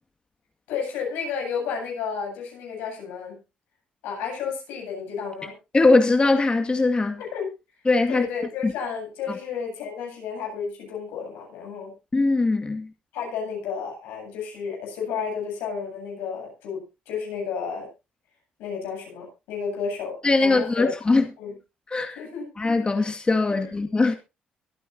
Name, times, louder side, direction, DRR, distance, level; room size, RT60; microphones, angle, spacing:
voice 1, 0.7-3.4 4.0-5.5 7.3-7.5 8.1-11.9 13.1-17.9 18.6-20.9 21.4-21.5 22.2-22.5 23.5-23.7, left 6 dB, 90° left, 8.0 m, -32 dB
voice 2, 5.7-7.2 7.9-8.3 8.6-8.7 9.3-9.4 12.1-12.9 20.2-21.3 21.9-22.2 22.6-24.2, left 3 dB, 30° left, 2.1 m, -21 dB
23.5 x 9.1 x 2.8 m
supercardioid pair, 65°, 3 cm